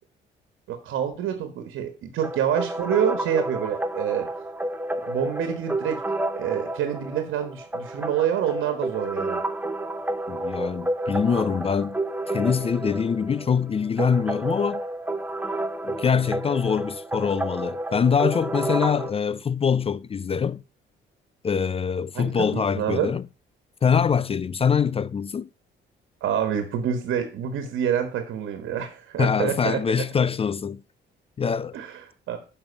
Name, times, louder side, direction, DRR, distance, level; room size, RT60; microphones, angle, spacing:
voice 1, 0.7-4.3 5.1-6.0 6.4-9.4 22.1-23.1 26.2-30.0 31.7-32.4, right 9 dB, 80° right, 1.4 m, -27 dB
sound 1, 2.2-19.1, right 1 dB, 10° right, 0.9 m, -30 dB
voice 2, 10.3-12.0 12.3-14.8 15.8-20.6 21.4-23.2 23.8-25.5 29.2-30.8 31.4-31.8, left 6 dB, 30° left, 0.4 m, -24 dB
7.1 x 5.4 x 6.7 m
cardioid pair, 90°, 20 cm